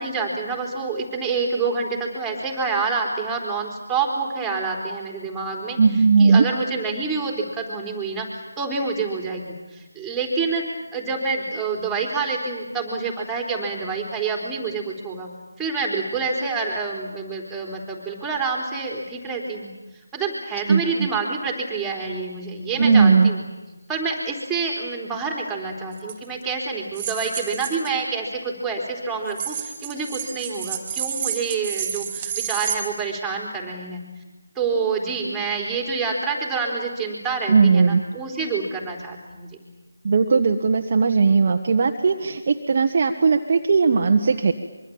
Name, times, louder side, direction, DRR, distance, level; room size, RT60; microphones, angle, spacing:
voice 1, 0.0-5.8 6.2-8.3 8.6-10.6 10.9-15.3 15.6-19.7 20.1-23.4 23.9-34.0 34.6-39.6, right 4 dB, 5° right, 0 dB, 4.0 m, -27 dB
voice 2, 5.8-6.4 20.7-20.8 22.8-23.3 37.5-38.0 40.0-44.5, right 4 dB, 40° right, 4 dB, 1.5 m, -17 dB
sound 1, 26.0-26.1 27.0-27.9 29.3-32.8, right 8 dB, 20° right, 3.2 m, -30 dB
24.5 x 23.5 x 8.8 m, 1.1 s
figure-of-eight pair, 165°, 0 cm